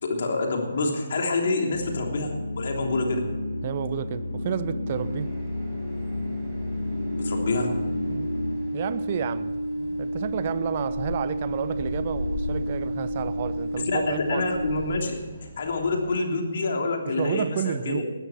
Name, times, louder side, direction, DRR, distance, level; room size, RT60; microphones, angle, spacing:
voice 1, 0.0-3.2 7.2-7.7 13.9-15.2 15.6-18.0, left 3 dB, 55° left, 2 dB, 3.3 m, -27 dB
sound 1, 1.7-8.6, left 2 dB, 75° left, 2.0 m, -31 dB
voice 2, 3.6-5.3 8.1-8.3 8.7-14.5 17.0-18.0, right 9 dB, 40° right, 14 dB, 0.9 m, -31 dB
sound 2, 4.9-16.1, left 1 dB, 20° right, 5.2 m, -39 dB
sound 3, 6.7-14.7, right 1 dB, 80° right, 3.7 m, -31 dB
19.0 x 13.0 x 4.4 m, 1.4 s
figure-of-eight pair, 140°, 0 cm